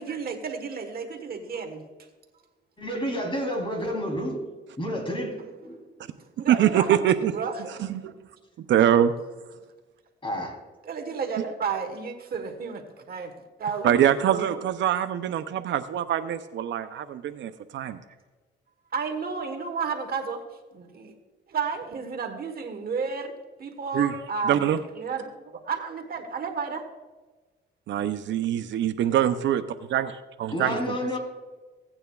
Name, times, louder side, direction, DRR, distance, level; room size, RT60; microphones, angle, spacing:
voice 1, 0.0-1.8 5.7-5.8 6.2-7.7 10.8-13.3 13.6-14.5 18.9-20.4 20.7-21.1 21.5-24.6 25.0-26.8, right 5 dB, 50° right, 5 dB, 1.3 m, -32 dB
voice 2, 2.8-4.4 4.8-5.8 10.2-10.5 30.5-31.2, equal, 25° left, 1 dB, 3.4 m, -30 dB
voice 3, 6.5-7.3 7.8-8.1 8.6-9.1 13.8-18.0 23.9-24.1 24.4-24.8 27.9-29.6 29.9-31.0, right 10 dB, 70° right, 10 dB, 0.6 m, -24 dB
16.5 x 8.9 x 2.3 m, 1.3 s
cardioid pair, 90°, 20 cm